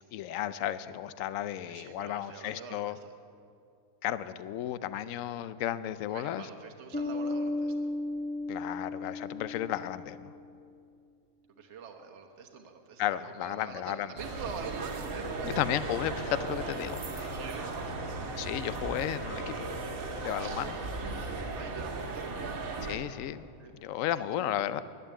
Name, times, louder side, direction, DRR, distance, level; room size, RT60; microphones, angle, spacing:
voice 1, 0.1-3.0 4.0-6.5 8.5-10.3 13.0-14.1 15.4-17.3 18.4-19.7 20.2-20.8 22.8-23.5 23.8-24.8, left 11 dB, 70° left, 14 dB, 0.9 m, -33 dB
voice 2, 1.7-3.1 6.1-7.9 11.6-15.7 17.4-18.1 20.4-20.6 21.5-22.8 23.6-23.7 24.0-24.7, right 5 dB, 55° right, 4 dB, 1.3 m, -45 dB
Bass guitar, 6.9-10.4, left 2 dB, 10° left, 1.4 m, -35 dB
sound 1, 14.2-23.0, right 3 dB, 70° right, 1.8 m, -36 dB
11.0 x 10.5 x 9.9 m, 2.4 s
omnidirectional pair, 1.5 m